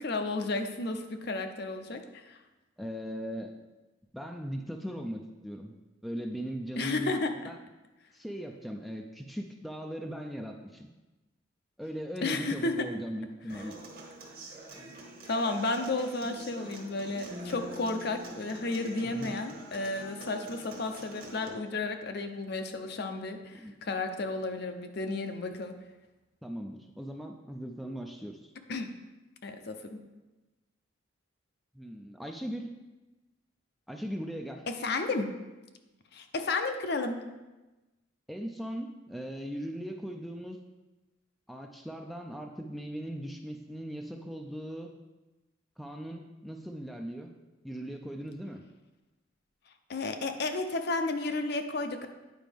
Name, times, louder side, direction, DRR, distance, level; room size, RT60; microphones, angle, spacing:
voice 1, 0.0-2.4 6.8-7.3 12.2-12.9 15.2-25.7 28.7-28.9 29.4-30.0 34.7-35.3 36.1-37.2 49.9-52.1, left 3 dB, 55° left, 7 dB, 0.6 m, -32 dB
voice 2, 2.8-3.6 4.1-5.7 6.0-7.1 7.5-7.6 8.1-10.9 11.8-13.8 19.1-19.4 23.5-23.7 26.4-28.5 31.7-32.7 33.9-34.7 38.3-40.6 41.5-44.9 45.8-47.3 47.6-48.6, equal, ahead, 2 dB, 0.3 m, -39 dB
Human voice / Acoustic guitar, 13.5-21.5, right 1 dB, 50° right, 1.4 m, -45 dB
9.1 x 5.0 x 3.5 m, 1.1 s
head